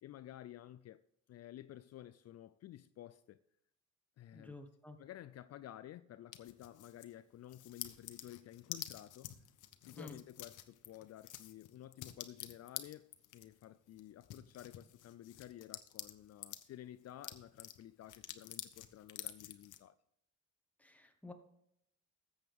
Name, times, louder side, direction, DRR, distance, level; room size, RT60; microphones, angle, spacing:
voice 1, 0.0-1.0 1.3-3.4 4.2-4.6 5.0-9.3 9.8-19.9, left 12 dB, 55° left, 0.5 m, -53 dB
voice 2, 4.3-5.0 9.9-10.2 20.8-21.3, left 2 dB, 5° left, 1.4 m, -51 dB
sound 1, 6.3-7.1 7.5-16.7 17.0-19.8, left 13 dB, 85° left, 0.9 m, -49 dB
13.5 x 7.9 x 3.6 m
cardioid pair, 90°, 30 cm